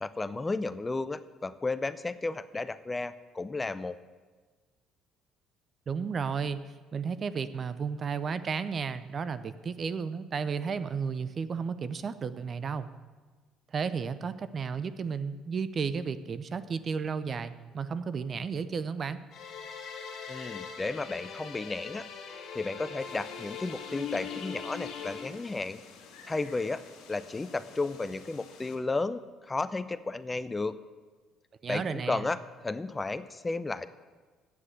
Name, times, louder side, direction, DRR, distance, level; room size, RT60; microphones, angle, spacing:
voice 1, 0.0-4.0 20.3-22.0 22.5-25.8 26.3-26.8 27.1-30.7 31.7-32.4 32.6-33.9, left 3 dB, 20° left, 14 dB, 0.5 m, -33 dB
voice 2, 5.9-12.9 13.7-19.2 31.6-32.3, right 6 dB, 45° right, 13 dB, 0.6 m, -33 dB
sound 1, 19.3-25.3, left 6 dB, 55° left, 2.0 m, -41 dB
sound 2, 23.0-28.8, left 6 dB, 75° left, 2.1 m, -50 dB
8.3 x 7.6 x 8.0 m, 1.4 s
supercardioid pair, 70°, 0 cm